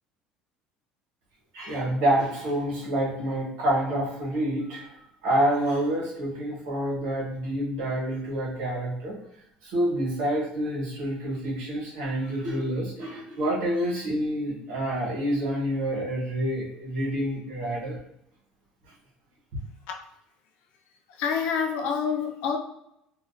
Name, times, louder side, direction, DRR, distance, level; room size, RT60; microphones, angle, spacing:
voice 1, 1.5-5.0 5.2-9.2 9.6-18.0, right 1 dB, 85° right, -3 dB, 1.0 m, -28 dB
voice 2, 21.2-22.6, left 6 dB, 65° left, 3 dB, 0.4 m, -27 dB
2.4 x 2.1 x 2.4 m, 0.79 s
cardioid pair, 165°, 2 cm